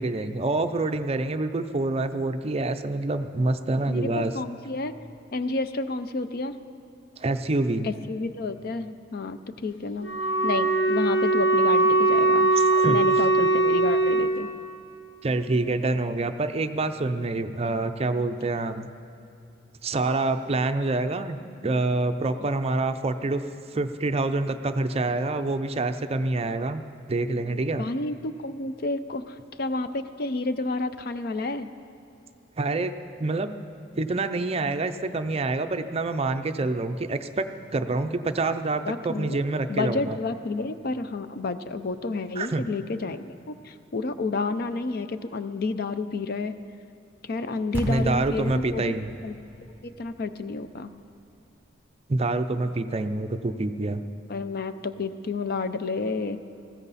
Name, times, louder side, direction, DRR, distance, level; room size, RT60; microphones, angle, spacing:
voice 1, 0.0-4.3 7.2-7.9 12.7-13.0 15.2-18.9 19.8-23.4 23.7-26.8 27.1-27.9 32.6-32.9 33.2-33.5 34.0-37.5 37.7-40.2 42.4-42.7 47.8-49.1 52.1-54.0, right 2 dB, 35° right, 9 dB, 0.5 m, -26 dB
voice 2, 3.9-4.9 5.3-6.6 7.8-10.1 10.4-12.5 12.9-14.5 27.8-31.7 38.9-39.4 39.7-46.5 47.2-48.9 49.2-49.4 49.8-50.9 54.3-56.4, left 3 dB, 55° left, 11 dB, 0.5 m, -30 dB
Wind instrument woodwind instrument, 10.0-14.4, right 2 dB, 85° left, 1.2 m, -21 dB
sound 1, 47.7-52.3, equal, 10° right, 1.2 m, -39 dB
19.0 x 15.0 x 4.1 m, 2.6 s
head